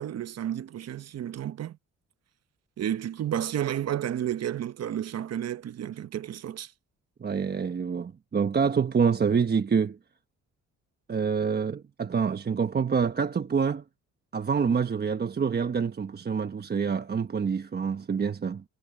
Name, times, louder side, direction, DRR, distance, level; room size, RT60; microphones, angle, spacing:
voice 1, 0.0-1.8 2.8-6.7, right 10 dB, 55° right, 1.1 m, -31 dB
voice 2, 7.2-10.0 11.1-13.8 14.3-18.6, right 6 dB, 35° right, 1.1 m, -26 dB
cardioid pair, 90°, 30 cm